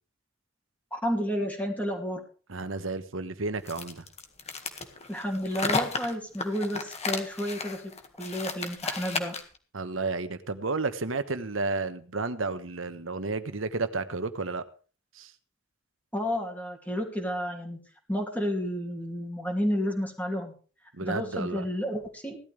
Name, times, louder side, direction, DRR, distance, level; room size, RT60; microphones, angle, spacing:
voice 1, 0.9-2.2 5.1-7.8 8.2-9.4 16.1-17.8 18.1-20.5 21.0-22.4, equal, 10° left, 0 dB, 2.7 m, -31 dB
voice 2, 2.5-4.1 9.7-14.6 15.1-15.3 20.9-21.6, right 3 dB, 85° right, 11 dB, 1.3 m, -32 dB
sound 1, 3.7-9.6, left 4 dB, 35° left, 1.8 m, -33 dB
17.0 x 12.5 x 3.4 m, 0.37 s
head